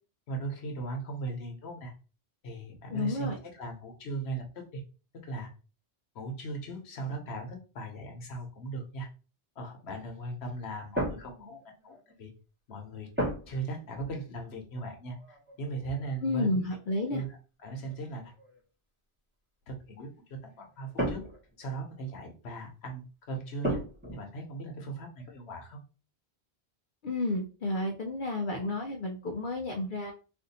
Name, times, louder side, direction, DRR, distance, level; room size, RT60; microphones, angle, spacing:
voice 1, 0.3-1.9 2.4-4.8 5.2-5.5 6.1-9.1 9.6-11.6 11.8-12.3 12.7-13.1 13.5-16.6 17.1-17.3 17.6-18.3 19.7-21.2 21.6-23.8 24.1-25.8, right 3 dB, 75° left, 2 dB, 1.1 m, -38 dB
voice 2, 2.9-3.4 16.2-17.2 27.0-30.1, left 2 dB, 60° left, 1 dB, 0.6 m, -31 dB
sound 1, 10.9-12.1 13.2-13.7 14.0-14.3 15.2-16.4 17.3-17.4 17.8-18.6 20.5-21.6 23.6-24.1, right 1 dB, 10° right, 1.1 m, -35 dB
2.5 x 2.5 x 4.0 m, 0.35 s
omnidirectional pair, 1.1 m